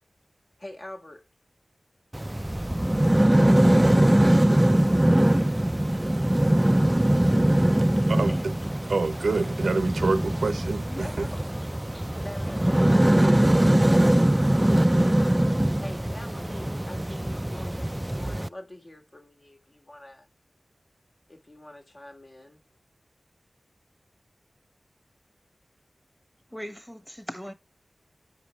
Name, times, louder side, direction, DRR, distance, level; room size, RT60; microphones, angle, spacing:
voice 1, 0.6-1.3 4.4-5.5 8.3-8.5 9.1-9.3 10.9-13.8 15.8-20.3 21.3-22.6, left 1 dB, 45° left, 1.5 m, -45 dB
sound 1, 2.1-18.5, right 1 dB, 20° right, 0.3 m, -22 dB
voice 2, 8.1-8.5 8.9-11.3, right 3 dB, 85° right, 0.7 m, -27 dB
voice 3, 26.5-27.5, equal, 5° left, 1.2 m, -39 dB
8.1 x 5.0 x 3.1 m
cardioid pair, 40°, 0 cm